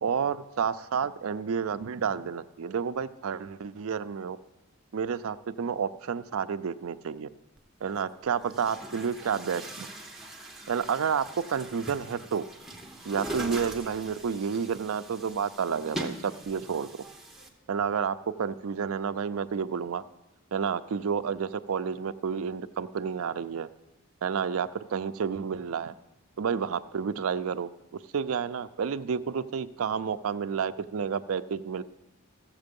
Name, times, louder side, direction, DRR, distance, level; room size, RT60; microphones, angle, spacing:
voice 1, 0.0-4.4 4.9-7.3 7.8-9.9 10.7-12.4 13.0-16.9 17.7-20.0 20.5-23.7 24.2-25.9 26.4-31.8, right 6 dB, 75° right, 11 dB, 0.4 m, -30 dB
Chatter / Gurgling / Tap, 7.6-7.7 8.4-17.5, right 1 dB, ahead, 0.9 m, -41 dB
14.0 x 7.4 x 5.2 m, 1.0 s
head